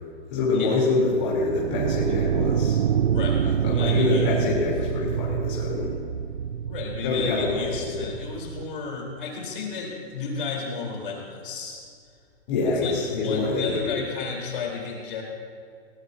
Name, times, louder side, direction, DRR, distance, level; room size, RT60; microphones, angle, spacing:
voice 1, 0.3-2.8 3.6-5.9 7.0-8.1 12.5-13.9, left 3 dB, 30° left, -6 dB, 3.5 m, -25 dB
sound 1, 1.4-8.6, right 8 dB, 65° right, 0.6 m, -26 dB
voice 2, 3.1-4.3 6.7-11.8 12.8-15.2, left 5 dB, 50° left, -1 dB, 4.1 m, -32 dB
21.5 x 18.5 x 2.8 m, 2.1 s
hypercardioid pair, 165°, 33 cm